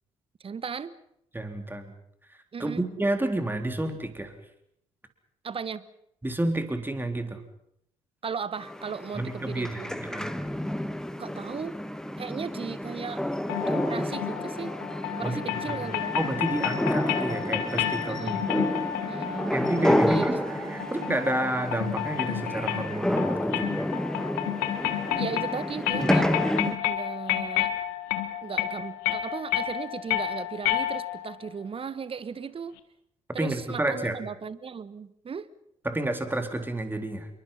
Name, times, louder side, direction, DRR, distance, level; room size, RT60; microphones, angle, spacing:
voice 1, 0.4-0.9 2.5-2.8 5.4-5.8 8.2-9.9 11.2-11.8 12.2-13.2 13.7-14.7 15.1-16.2 18.1-18.7 19.1-20.9 25.2-26.3 26.8-27.7 28.4-32.7 33.3-35.5, right 6 dB, 35° right, 17 dB, 1.3 m, -36 dB
voice 2, 1.3-1.9 2.6-4.3 6.2-7.4 9.2-10.3 15.2-15.4 15.7-15.8 16.2-18.3 19.5-23.7 33.4-34.2 35.8-37.3, right 1 dB, 10° right, 7 dB, 3.8 m, -30 dB
sound 1, 8.6-26.8, left 1 dB, 5° left, 1.5 m, -30 dB
sound 2, 13.5-31.3, left 13 dB, 70° left, 1.6 m, -31 dB
Wind instrument woodwind instrument, 16.5-21.3, right 11 dB, 60° right, 2.3 m, -45 dB
27.5 x 23.0 x 5.7 m, 0.75 s
figure-of-eight pair, 50°, 16 cm